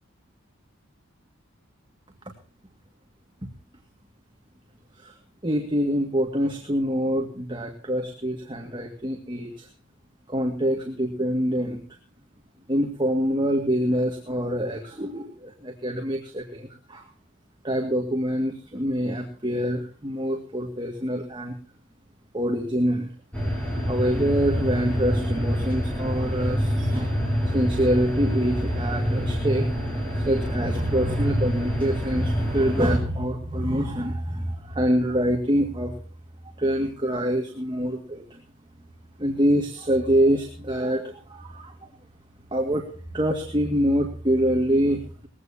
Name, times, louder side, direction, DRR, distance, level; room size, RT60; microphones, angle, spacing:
voice 1, 5.4-9.7 10.3-11.8 12.7-17.0 17.6-21.6 22.3-23.1 23.9-27.1 27.5-29.7 30.1-35.9 36.6-38.4 39.2-41.7 42.5-45.3, equal, 25° right, 2 dB, 2.0 m, -25 dB
sound 1, 23.3-33.0, equal, 5° left, 6.4 m, -26 dB
20.5 x 16.0 x 2.8 m, 0.39 s
head